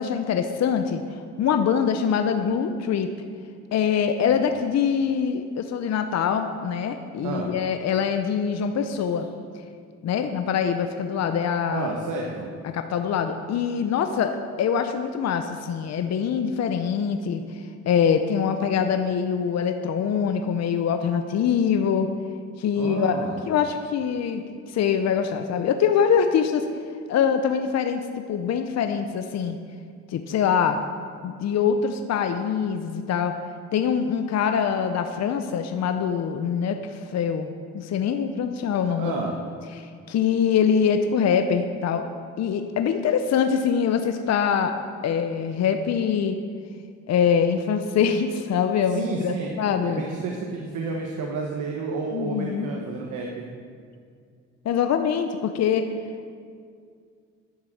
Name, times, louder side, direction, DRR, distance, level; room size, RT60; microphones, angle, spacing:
voice 1, 0.0-3.1 3.7-9.3 10.0-11.9 12.6-17.6 17.9-22.1 22.6-23.2 23.5-26.7 27.1-28.0 28.3-29.6 30.1-30.8 31.2-33.3 33.7-37.5 37.7-39.1 39.8-42.0 42.4-46.4 47.1-50.1 52.1-52.7 54.6-55.9, left 7 dB, 60° left, 7 dB, 0.7 m, -24 dB
voice 2, 11.7-12.5 22.8-23.4 39.0-39.4 48.9-49.5 49.8-53.5, right 3 dB, 80° right, 0 dB, 1.3 m, -30 dB
11.5 x 6.3 x 7.8 m, 2.2 s
cardioid pair, 90°, 30 cm